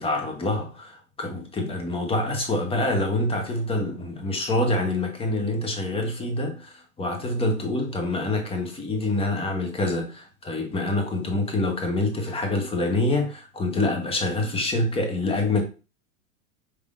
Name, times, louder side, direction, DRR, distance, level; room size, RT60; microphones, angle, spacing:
voice 1, 0.0-15.6, left 2 dB, 15° left, 1.0 m, -26 dB
4.8 x 3.6 x 2.5 m
hypercardioid pair, 115°, 42 cm